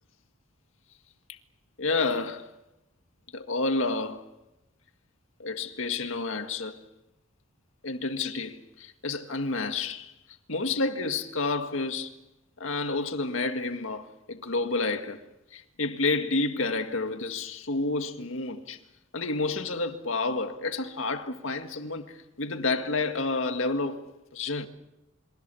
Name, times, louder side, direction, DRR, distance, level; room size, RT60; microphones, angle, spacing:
voice 1, 1.8-2.5 3.3-4.3 5.4-6.8 7.8-10.1 10.5-12.1 12.6-15.2 15.5-18.8 19.1-24.7, left 3 dB, 70° left, 1.9 m, -30 dB
28.5 x 23.5 x 7.0 m
head